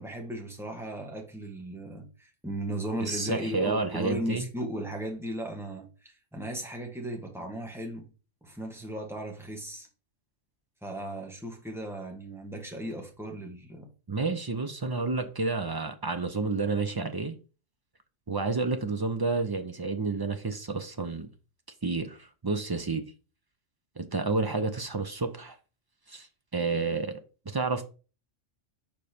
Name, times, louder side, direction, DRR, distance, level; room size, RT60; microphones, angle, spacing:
voice 1, 0.0-8.1 8.4-9.9 10.8-13.9, right 1 dB, ahead, 1.4 m, -36 dB
voice 2, 3.0-4.4 14.1-17.4 18.3-21.3 21.8-23.0 24.0-25.6 26.1-26.3 26.5-27.8, right 3 dB, 40° right, 0.3 m, -30 dB
5.4 x 4.5 x 5.0 m
omnidirectional pair, 1.3 m